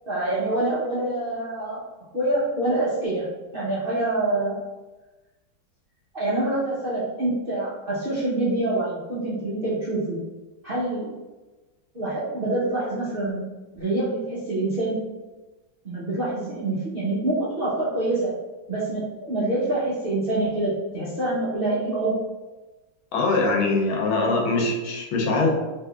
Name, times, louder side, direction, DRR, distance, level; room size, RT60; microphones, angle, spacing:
voice 1, 0.0-1.8 2.1-3.3 3.5-4.6 6.1-10.2 10.6-11.1 11.9-13.5 13.7-15.0 15.8-18.3 18.7-22.2, right 2 dB, 75° right, -9 dB, 0.5 m, -26 dB
voice 2, 23.1-25.5, left 3 dB, 80° left, 0 dB, 1.5 m, -22 dB
3.6 x 3.2 x 2.3 m, 1.1 s
omnidirectional pair, 2.2 m